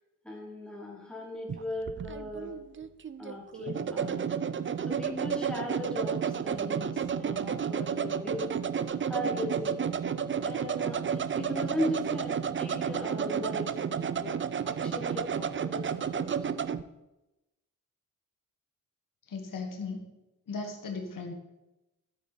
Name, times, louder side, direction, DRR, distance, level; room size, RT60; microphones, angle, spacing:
voice 1, 0.2-2.5 3.2-4.3 4.9-8.5 9.1-9.8 10.4-13.7 14.0-14.3 14.6-16.3, left 1 dB, 5° left, -3 dB, 2.9 m, -37 dB
sound 1, 1.5-16.8, right 7 dB, 35° right, 0.5 m, -31 dB
voice 2, 13.3-13.7 19.3-20.1 20.5-21.3, left 4 dB, 75° left, 3 dB, 1.5 m, -38 dB
13.0 x 8.1 x 4.0 m, 0.97 s
wide cardioid pair, 115°, 33 cm